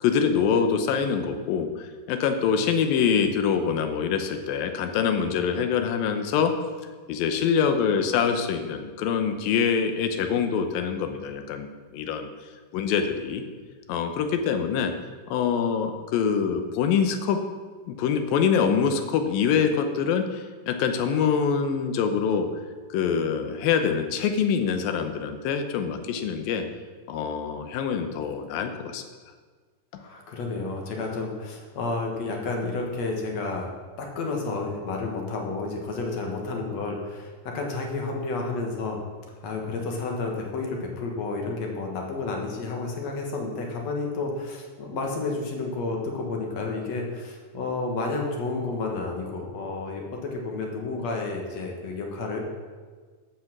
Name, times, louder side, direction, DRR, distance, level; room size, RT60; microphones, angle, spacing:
voice 1, 0.0-6.5 7.1-12.3 12.7-13.4 13.9-14.9 15.3-17.4 17.9-22.5 22.9-26.6 27.1-29.0, left 7 dB, 85° left, 7 dB, 2.6 m, -25 dB
voice 2, 30.0-33.7 34.0-39.0 39.4-52.4, left 3 dB, 55° left, 1 dB, 2.3 m, -31 dB
14.0 x 5.6 x 6.0 m, 1.5 s
omnidirectional pair, 4.0 m